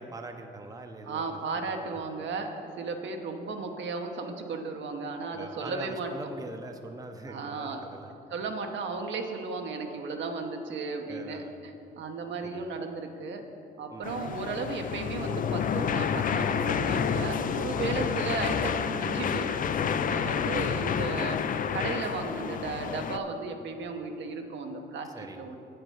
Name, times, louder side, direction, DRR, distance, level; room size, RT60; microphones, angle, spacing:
voice 1, 0.0-1.3 1.7-2.0 5.3-8.1 11.1-11.6 12.4-12.6 13.9-14.1 20.1-20.5 25.1-25.4, right 2 dB, 20° right, 5 dB, 0.7 m, -42 dB
voice 2, 1.0-2.5 2.8-6.1 7.3-7.8 8.3-13.4 13.8-21.4 21.7-25.1 25.4-25.6, right 4 dB, 70° right, 4 dB, 1.0 m, -35 dB
sound 1, 14.0-23.2, left 7 dB, 45° left, 0.4 m, -29 dB
8.1 x 7.8 x 5.6 m, 2.7 s
cardioid pair, 90°, 20 cm